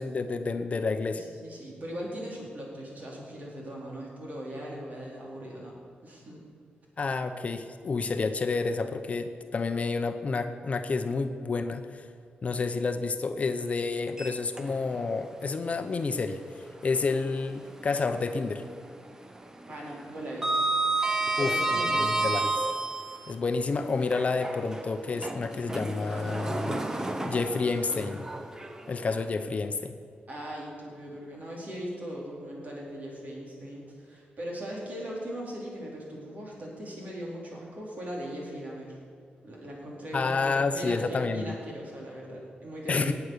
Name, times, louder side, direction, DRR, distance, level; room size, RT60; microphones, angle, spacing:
voice 1, 0.0-1.2 7.0-12.1 12.4-16.4 16.8-18.6 21.4-21.5 21.9-22.5 23.3-26.8 27.2-28.3 28.9-29.9 40.1-41.6 42.9-43.1, left 4 dB, 40° left, 8 dB, 0.8 m, -29 dB
voice 2, 1.1-5.7 6.0-6.4 19.7-20.6 21.4-22.4 30.3-39.0 39.4-43.1, equal, 50° right, -3 dB, 4.3 m, -39 dB
Sliding door, 14.1-15.1 15.5-15.6 17.3-18.3 18.6-19.0 19.2-23.3 24.0-29.2, right 2 dB, 15° right, 0.9 m, -31 dB
19.0 x 8.2 x 6.7 m, 2.2 s
wide cardioid pair, 130°, 3 cm